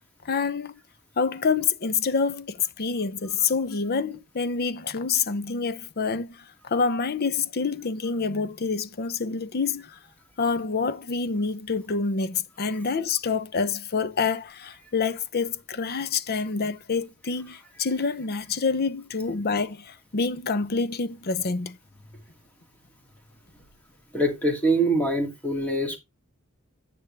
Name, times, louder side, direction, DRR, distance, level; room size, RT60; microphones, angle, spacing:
voice 1, 0.2-0.8 1.2-10.0 10.4-21.8, left 5 dB, 45° left, 0.7 m, -27 dB
voice 2, 24.1-26.0, right 1 dB, 5° left, 2.4 m, -24 dB
9.7 x 7.2 x 3.4 m
head